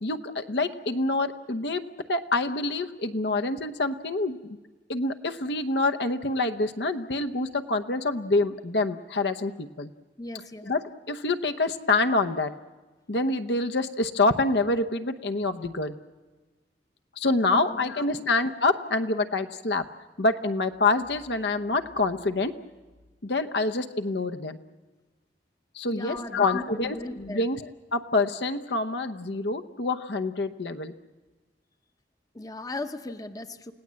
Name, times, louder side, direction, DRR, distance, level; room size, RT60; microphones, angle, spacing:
voice 1, 0.0-4.6 4.9-9.9 10.7-12.5 13.1-15.9 17.2-19.8 20.2-22.5 23.2-24.6 25.7-30.9, left 2 dB, 65° left, 7 dB, 0.9 m, -26 dB
voice 2, 10.2-10.7 17.5-18.3 25.9-27.5 32.3-33.7, left 2 dB, 20° left, 8 dB, 0.9 m, -38 dB
29.5 x 17.5 x 7.6 m, 1.3 s
head